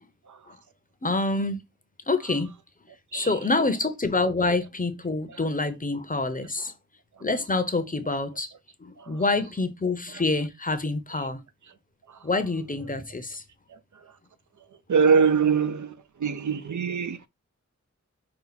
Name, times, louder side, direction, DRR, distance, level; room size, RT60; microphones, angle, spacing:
voice 1, 1.0-1.6 2.1-2.5 3.1-6.7 7.2-8.5 8.8-11.4 12.2-13.4, left 3 dB, 25° left, 0.7 m, -27 dB
voice 2, 14.9-15.9 16.2-17.3, right 6 dB, 70° right, 0.5 m, -23 dB
5.7 x 2.3 x 4.0 m
wide cardioid pair, 95°, 31 cm